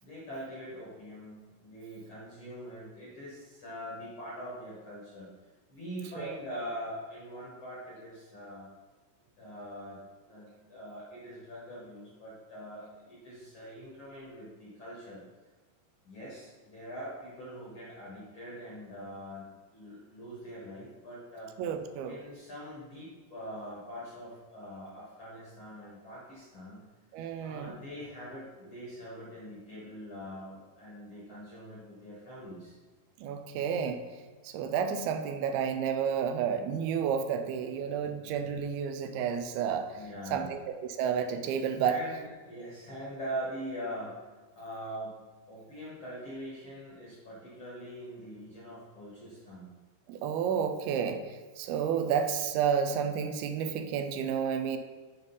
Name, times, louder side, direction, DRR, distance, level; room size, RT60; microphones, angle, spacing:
voice 1, 0.0-5.3 5.7-8.7 9.4-10.0 10.2-15.2 16.0-21.5 22.0-26.8 27.4-32.7 38.0-38.1 39.9-40.5 41.8-44.3 44.5-45.2 45.5-49.7, equal, 50° left, -7 dB, 1.6 m, -43 dB
voice 2, 21.6-22.2 27.1-27.8 33.2-34.0 34.4-40.0 40.3-42.0 50.1-51.2 51.6-54.8, right 7 dB, 85° right, 8 dB, 2.4 m, -31 dB
7.4 x 5.2 x 4.0 m, 1.3 s
omnidirectional pair, 4.4 m